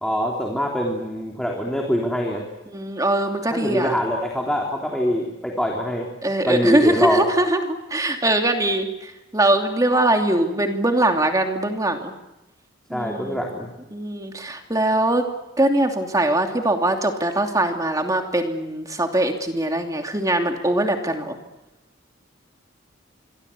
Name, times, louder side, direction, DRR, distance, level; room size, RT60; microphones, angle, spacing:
voice 1, 0.0-2.4 3.5-6.1 6.5-7.3 12.9-13.7, equal, 5° left, -1 dB, 3.3 m, -24 dB
voice 2, 2.7-3.9 6.2-8.9 9.3-12.1 12.9-13.4 13.9-15.2 15.6-21.4, right 1 dB, 20° right, 4 dB, 2.8 m, -22 dB
26.5 x 23.5 x 8.5 m, 0.99 s
head